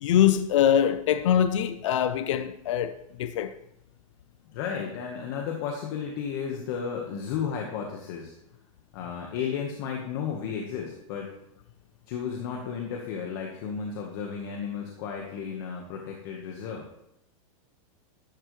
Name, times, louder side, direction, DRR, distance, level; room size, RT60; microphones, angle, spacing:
voice 1, 0.0-2.9 3.2-3.5, left 10 dB, 60° left, 0.7 m, -23 dB
voice 2, 4.5-8.3 8.9-11.3 12.1-16.9, left 7 dB, 40° left, 1.5 m, -33 dB
12.0 x 12.0 x 3.3 m
supercardioid pair, 175°, 18 cm